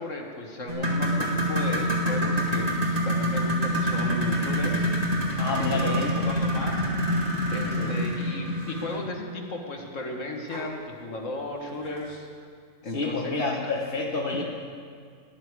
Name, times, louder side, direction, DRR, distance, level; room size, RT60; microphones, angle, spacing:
voice 1, 0.0-4.9 5.2-5.3 5.6-6.9 7.5-12.3 12.8-13.7 14.3-14.4, left 1 dB, 70° left, 1 dB, 2.0 m, -35 dB
sound 1, 0.7-9.1 10.5-10.6 11.1-11.2 11.9-12.0, equal, 30° right, 2.3 m, -26 dB
voice 2, 5.4-6.1 7.8-8.0 12.9-14.4, left 3 dB, 45° left, -4 dB, 1.5 m, -28 dB
19.0 x 11.0 x 4.8 m, 2.2 s
omnidirectional pair, 1.4 m